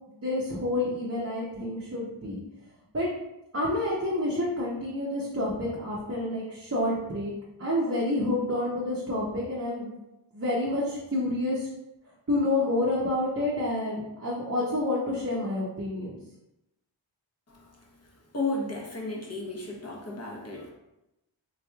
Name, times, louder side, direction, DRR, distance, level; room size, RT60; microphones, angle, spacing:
voice 1, 0.1-2.4 2.9-3.1 3.5-7.3 7.6-10.0 10.3-11.7 12.3-16.2, left 1 dB, 30° right, -5 dB, 0.7 m, -28 dB
voice 2, 17.5-20.7, left 2 dB, 30° left, -2 dB, 0.9 m, -34 dB
3.9 x 3.0 x 2.3 m, 0.92 s
wide cardioid pair, 60°, 47 cm